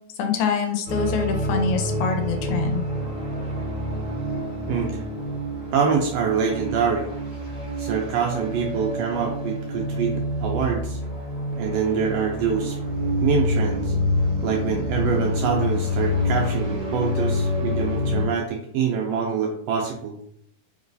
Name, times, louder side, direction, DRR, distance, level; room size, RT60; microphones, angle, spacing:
voice 1, 0.2-2.9, left 5 dB, 90° left, 4 dB, 2.1 m, -25 dB
sound 1, 0.9-18.3, left 1 dB, 40° left, 2.1 m, -27 dB
voice 2, 4.7-5.0 5.7-7.1 7.8-11.0 11.6-12.8 13.2-13.9 14.4-20.2, right 6 dB, 80° right, 1 dB, 1.5 m, -25 dB
4.4 x 3.1 x 2.6 m, 0.66 s
omnidirectional pair, 3.3 m